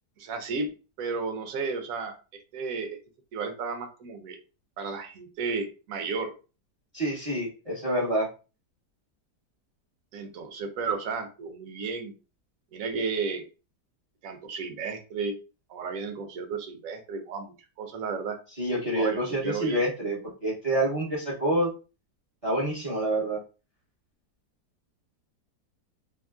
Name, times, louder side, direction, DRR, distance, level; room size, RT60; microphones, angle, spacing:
voice 1, 0.2-0.7 1.0-3.0 3.3-4.4 4.8-6.3 10.1-12.1 12.7-13.4 14.2-15.4 15.7-18.4 18.8-19.8, right 4 dB, 65° right, 6 dB, 0.9 m, -33 dB
voice 2, 6.9-8.3 18.6-21.7 22.4-23.4, right 1 dB, 40° right, -3 dB, 0.5 m, -27 dB
2.9 x 2.4 x 2.3 m, 0.32 s
omnidirectional pair, 1.8 m